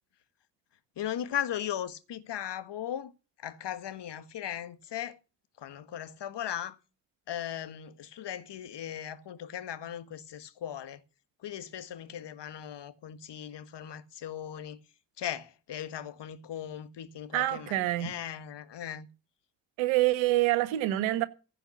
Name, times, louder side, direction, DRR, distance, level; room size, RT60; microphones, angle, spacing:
voice 1, 1.0-3.1 3.4-5.2 5.6-6.8 7.3-11.0 11.4-14.8 15.2-19.1, left 10 dB, 60° left, 1.7 m, -38 dB
voice 2, 17.3-18.1 19.8-21.3, right 16 dB, 85° right, 1.4 m, -26 dB
15.5 x 5.7 x 8.7 m
hypercardioid pair, 45°, 46 cm